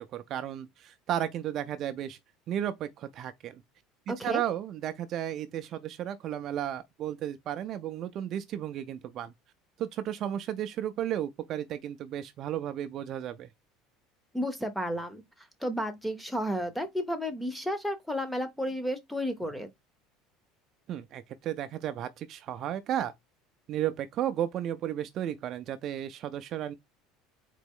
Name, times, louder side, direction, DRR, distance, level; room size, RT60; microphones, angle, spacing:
voice 1, 0.0-2.2 2.5-3.6 4.2-9.3 9.8-13.5 20.9-23.1 23.7-26.7, right 11 dB, 35° right, 0.3 m, -33 dB
voice 2, 4.1-4.4 14.3-15.2 15.6-19.7, equal, ahead, 0.6 m, -32 dB
4.0 x 2.9 x 3.6 m
cardioid pair, 170°, 0 cm